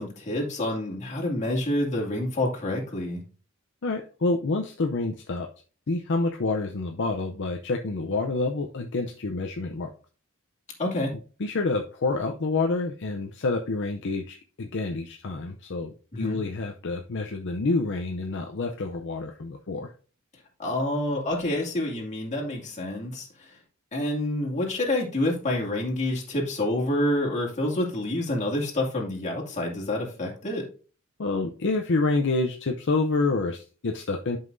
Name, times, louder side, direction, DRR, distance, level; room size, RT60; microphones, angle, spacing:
voice 1, 0.0-3.2 10.8-11.1 16.1-16.4 20.6-23.3 23.9-30.7, left 1 dB, 35° left, -2 dB, 2.4 m, -28 dB
voice 2, 3.8-5.5 5.9-9.9 11.4-19.9 31.2-34.4, left 3 dB, 60° left, 3 dB, 0.7 m, -28 dB
11.0 x 5.6 x 2.6 m, 0.38 s
head